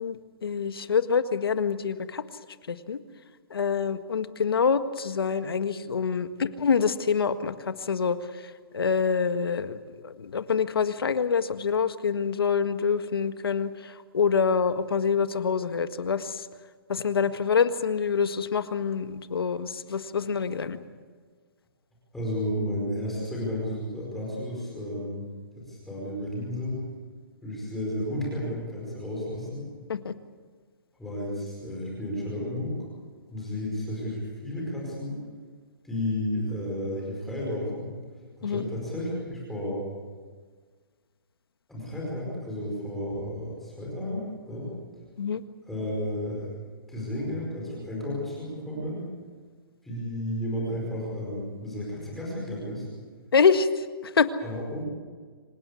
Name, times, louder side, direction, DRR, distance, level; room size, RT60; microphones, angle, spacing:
voice 1, 0.0-2.2 2.7-3.0 3.5-8.2 8.7-9.8 10.0-16.4 16.9-20.8 29.9-30.1 38.4-38.7 45.2-45.4 53.3-54.3, left 6 dB, 85° left, 10 dB, 1.7 m, -26 dB
voice 2, 22.1-25.3 25.6-26.8 27.4-29.6 31.0-32.8 33.3-35.2 35.8-37.9 38.4-39.8 41.7-44.7 45.6-46.5 46.9-49.0 49.8-52.9 54.4-54.9, left 1 dB, ahead, -5 dB, 5.0 m, -32 dB
26.5 x 17.0 x 8.5 m, 1.5 s
hypercardioid pair, 180°, 12 cm